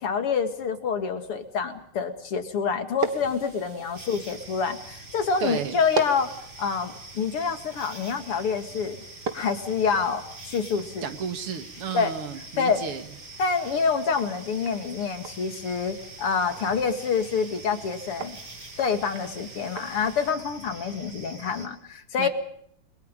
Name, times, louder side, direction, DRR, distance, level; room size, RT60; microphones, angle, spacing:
voice 1, 0.0-6.3 6.6-9.0 9.3-11.1 11.9-12.2 12.6-12.8 13.4-18.4 18.8-22.3, left 5 dB, 80° left, 7 dB, 3.2 m, -27 dB
sound 1, 3.0-20.3, right 5 dB, 50° right, 2.1 m, -40 dB
sound 2, 3.9-21.7, right 2 dB, 25° right, 4.3 m, -45 dB
voice 2, 5.4-5.8 11.0-13.0 22.2-22.3, right 7 dB, 90° right, 9 dB, 2.7 m, -32 dB
29.5 x 22.0 x 5.4 m, 0.69 s
omnidirectional pair, 2.4 m